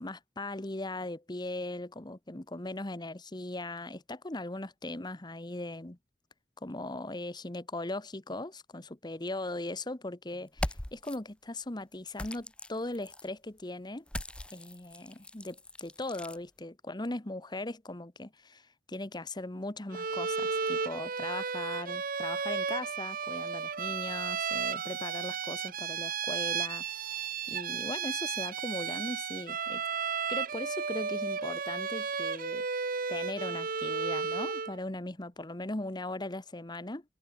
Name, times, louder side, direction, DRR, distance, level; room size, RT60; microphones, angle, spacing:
voice 1, 0.0-6.0 6.6-14.0 14.5-29.8 30.3-32.6 33.1-37.0, left 2 dB, 25° left, 1.2 m, -39 dB
sound 1, 10.5-11.2 12.1-13.3 14.1-16.4, left 1 dB, 5° left, 0.6 m, -40 dB
Bowed string instrument, 19.9-34.8, right 6 dB, 50° right, 1.1 m, -34 dB
head